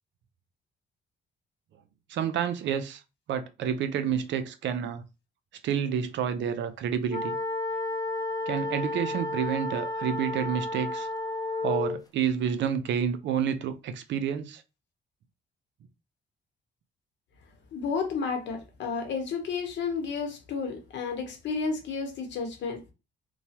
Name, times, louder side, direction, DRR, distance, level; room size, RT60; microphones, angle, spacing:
voice 1, 2.1-3.0 3.3-5.0 5.6-7.4 8.5-11.1 11.6-14.6, right 8 dB, 70° right, 0.5 m, -29 dB
sound 1, 7.1-12.0, left 2 dB, 20° left, 0.6 m, -32 dB
voice 2, 17.7-22.8, left 5 dB, 65° left, 0.9 m, -32 dB
2.9 x 2.2 x 2.8 m
cardioid pair, 90°, 20 cm